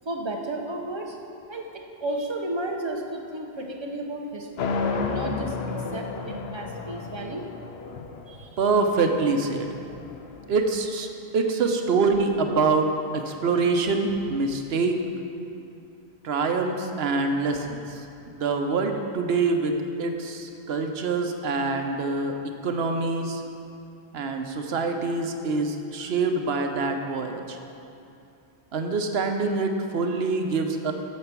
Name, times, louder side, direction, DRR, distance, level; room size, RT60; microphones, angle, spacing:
voice 1, 0.0-1.2 1.5-1.7 2.0-4.7 5.1-5.6 5.9-7.5 8.3-8.5, right 1 dB, 30° right, 1 dB, 0.8 m, -33 dB
sound 1, 4.6-10.7, left 4 dB, 80° left, 0.9 m, -32 dB
voice 2, 8.6-9.7 10.5-11.1 11.3-15.0 16.2-22.3 22.6-23.4 24.1-27.6 28.7-30.9, right 3 dB, 80° right, 5 dB, 1.0 m, -25 dB
8.6 x 6.8 x 5.9 m, 2.7 s
omnidirectional pair, 1.1 m